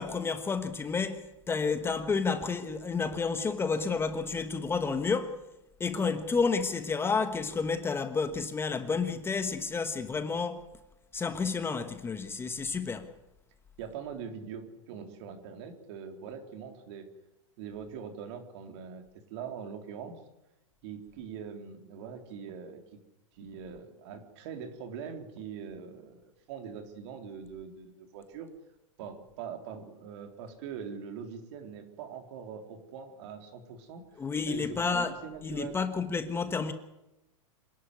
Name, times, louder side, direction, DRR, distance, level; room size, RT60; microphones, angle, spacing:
voice 1, 0.0-5.4 5.8-10.7 11.1-13.1 34.2-35.2 35.4-36.7, left 5 dB, 15° left, 1.3 m, -30 dB
voice 2, 13.8-17.1 17.6-20.2 20.8-23.0 23.3-28.5 29.0-34.0 34.5-35.8, right 7 dB, 55° right, 3.9 m, -42 dB
26.5 x 11.5 x 9.7 m
hypercardioid pair, 130°, 17 cm